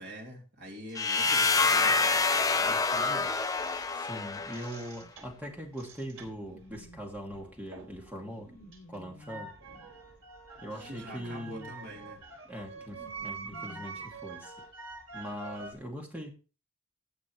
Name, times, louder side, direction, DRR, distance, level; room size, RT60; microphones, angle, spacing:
voice 1, 0.0-2.2 2.6-3.4 10.7-12.2, equal, 50° right, 0 dB, 3.2 m, -45 dB
sound 1, 1.0-4.8, left 4 dB, 15° left, 0.6 m, -27 dB
sound 2, 2.1-4.1 4.4-8.1 8.4-15.7, right 4 dB, 75° right, 3.7 m, -46 dB
voice 2, 3.9-8.5 8.9-9.5 10.6-11.7 12.4-14.5 15.1-16.3, equal, 5° right, 1 dB, 2.5 m, -41 dB
sound 3, 5.0-14.1, equal, 45° left, 6.4 m, -54 dB
15.5 x 8.3 x 3.2 m, 0.33 s
head